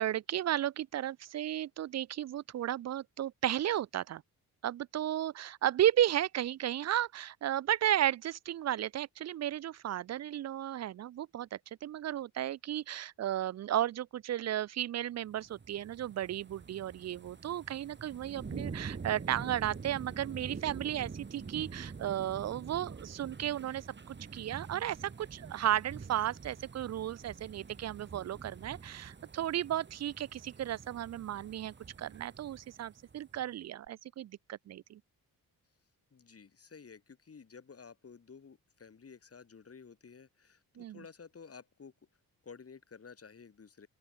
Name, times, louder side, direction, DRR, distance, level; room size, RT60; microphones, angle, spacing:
voice 1, 0.0-4.2 4.6-35.0 40.8-41.0, right 12 dB, 45° right, 0.4 m, -34 dB
sound 1, 15.3-33.4 33.9-34.0, right 5 dB, 30° right, 2.3 m, -46 dB
voice 2, 36.1-41.9 42.4-43.9, left 5 dB, 40° left, 7.7 m, -53 dB
open air
cardioid pair, 110°, 37 cm